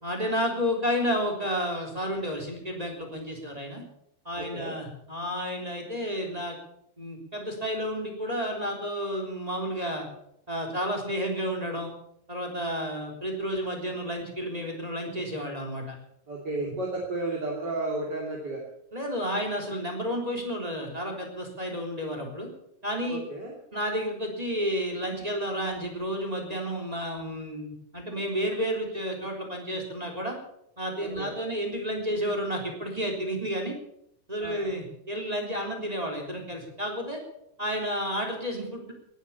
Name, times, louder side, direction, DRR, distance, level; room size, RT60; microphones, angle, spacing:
voice 1, 0.0-3.8 4.2-6.6 7.0-10.1 10.5-11.9 12.3-15.9 16.6-16.7 18.9-22.5 22.8-23.2 23.7-30.4 30.8-33.7 34.3-37.2 37.6-38.9, equal, 10° right, 2 dB, 3.1 m, -31 dB
voice 2, 4.4-4.7 16.3-18.6 23.1-23.5 31.0-31.3 34.4-34.7, right 2 dB, 30° right, -2 dB, 3.1 m, -33 dB
19.0 x 10.5 x 7.2 m, 0.74 s
omnidirectional pair, 4.3 m